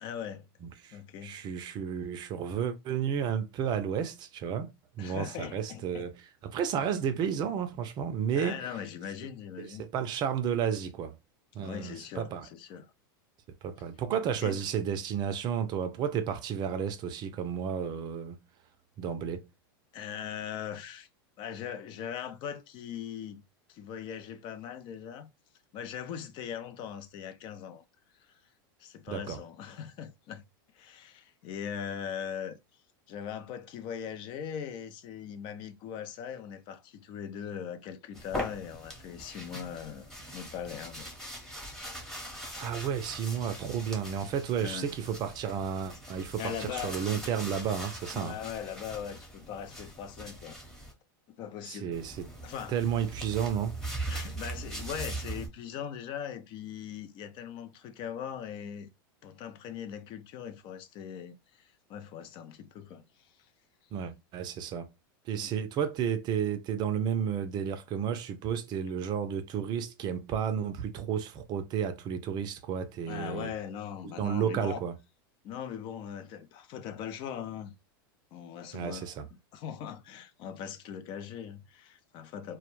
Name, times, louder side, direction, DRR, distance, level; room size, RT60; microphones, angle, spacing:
voice 1, 0.0-0.5 0.9-1.3 5.0-6.1 8.3-9.8 11.6-12.9 14.4-14.6 19.9-21.1 21.4-23.4 23.7-25.3 25.7-27.8 28.3-28.4 28.8-30.4 30.7-32.6 33.1-41.1 41.5-41.9 44.6-44.9 46.4-47.1 48.1-50.6 51.3-51.9 52.4-52.8 54.1-58.9 59.2-63.3 65.3-65.5 73.1-74.8 75.4-77.7 78.3-79.1 79.5-82.6, left 8 dB, 45° left, 0.4 m, -40 dB
voice 2, 0.6-4.7 5.0-6.1 6.4-8.6 9.6-11.1 11.5-12.5 13.6-18.4 19.0-19.5 29.1-29.4 42.6-48.4 51.7-52.3 52.7-53.8 63.9-64.9 65.3-73.5 74.0-74.9 78.7-79.3, right 8 dB, 35° right, 0.4 m, -32 dB
sound 1, 38.1-50.9 51.9-55.5, right 1 dB, 5° left, 0.8 m, -41 dB
2.2 x 2.1 x 3.0 m
hypercardioid pair, 115°, 12 cm